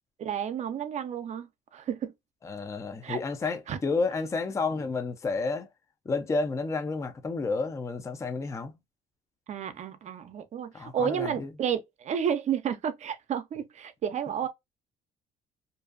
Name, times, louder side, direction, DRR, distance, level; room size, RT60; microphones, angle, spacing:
voice 1, 0.2-2.1 3.0-3.2 3.7-3.8 9.5-14.5, right 8 dB, 45° right, 0.5 m, -31 dB
voice 2, 2.4-5.7 6.1-8.7 10.7-11.5, left 3 dB, 15° left, 0.4 m, -31 dB
2.5 x 2.3 x 2.3 m
cardioid pair, 110°, 17 cm